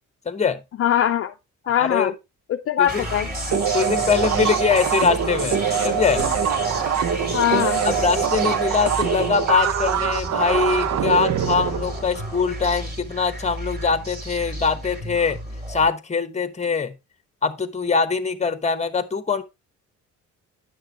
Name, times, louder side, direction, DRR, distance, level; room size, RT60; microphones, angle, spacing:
voice 1, 0.2-0.6 1.8-2.1 2.8-3.0 3.7-6.3 7.8-15.4 15.7-16.9 17.4-19.4, left 5 dB, 20° left, 1.0 m, -23 dB
voice 2, 0.8-1.3 1.7-2.1 2.5-3.3 7.3-7.8, left 10 dB, 50° left, 0.5 m, -21 dB
sound 1, 2.9-15.9, equal, 30° right, 3.1 m, -32 dB
sound 2, 3.5-12.7, right 8 dB, 55° right, 0.8 m, -24 dB
sound 3, 5.3-10.1, right 4 dB, 85° right, 2.3 m, -45 dB
9.8 x 6.6 x 2.9 m
cardioid pair, 90°, 30 cm